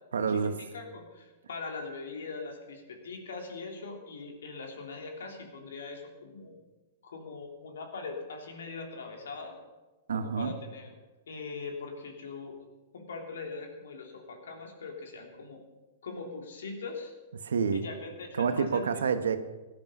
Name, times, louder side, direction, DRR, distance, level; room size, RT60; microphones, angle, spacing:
voice 1, 0.1-0.5 10.1-10.5 17.3-17.8 18.4-19.4, right 6 dB, 85° right, 9 dB, 1.2 m, -28 dB
voice 2, 0.7-6.5 7.0-9.6 10.1-10.9 11.3-12.6 12.9-15.6 16.0-17.1 17.7-19.0, left 4 dB, 80° left, 2 dB, 3.3 m, -41 dB
17.5 x 10.5 x 5.5 m, 1.2 s
hypercardioid pair, 120°, 0 cm